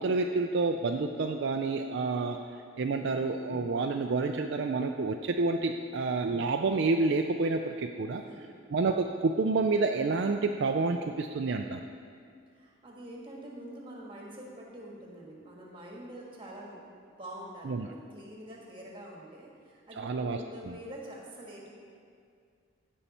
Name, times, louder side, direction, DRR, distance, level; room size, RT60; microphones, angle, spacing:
voice 1, 0.0-2.4 2.8-8.2 8.7-11.8 17.6-17.9 20.0-20.4 20.7-20.8, right 3 dB, 55° right, 4 dB, 0.4 m, -29 dB
voice 2, 8.2-8.5 12.5-16.8 17.2-21.7, right 1 dB, 25° right, -3 dB, 1.6 m, -46 dB
16.0 x 5.6 x 4.2 m, 2.2 s
head